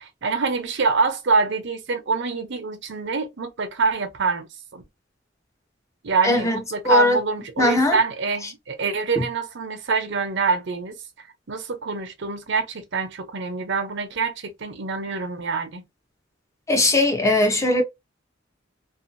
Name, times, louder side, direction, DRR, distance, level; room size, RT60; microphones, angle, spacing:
voice 1, 0.0-4.5 4.7-4.8 6.0-15.8, right 4 dB, 65° right, 0.7 m, -25 dB
voice 2, 6.2-6.6 6.8-7.2 7.6-8.0 16.7-17.8, left 2 dB, 15° left, 0.7 m, -19 dB
2.6 x 2.3 x 2.5 m
head